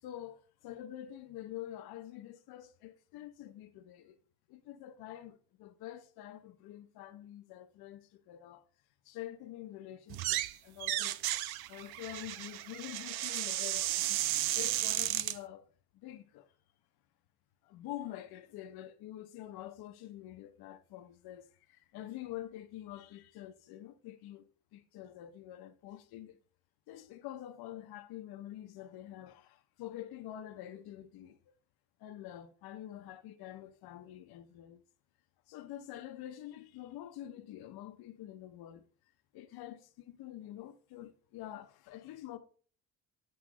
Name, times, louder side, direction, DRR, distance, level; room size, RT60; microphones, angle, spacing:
voice 1, 0.0-4.2 4.5-8.6 9.0-11.2 11.7-14.2 14.5-16.5 17.6-26.4 26.9-31.4 32.0-34.8 35.5-38.9 39.3-42.4, left 13 dB, 75° left, 0.7 m, -47 dB
sound 1, 10.1-10.5 10.8-15.4, right 15 dB, 85° right, 0.5 m, -34 dB
7.7 x 3.1 x 4.8 m
cardioid pair, 115°, 37 cm